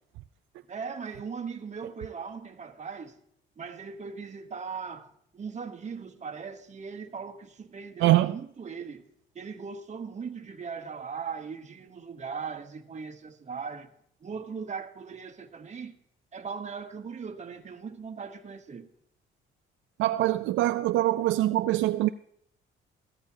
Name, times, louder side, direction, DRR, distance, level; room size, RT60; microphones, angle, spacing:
voice 1, 0.7-3.2 3.6-9.0 9.3-13.9 14.2-16.0 16.3-18.9, right 5 dB, 35° right, 1.1 m, -39 dB
voice 2, 8.0-8.4 20.0-22.1, right 15 dB, 80° right, 0.4 m, -23 dB
15.0 x 13.5 x 2.8 m
cardioid pair, 90°, 20 cm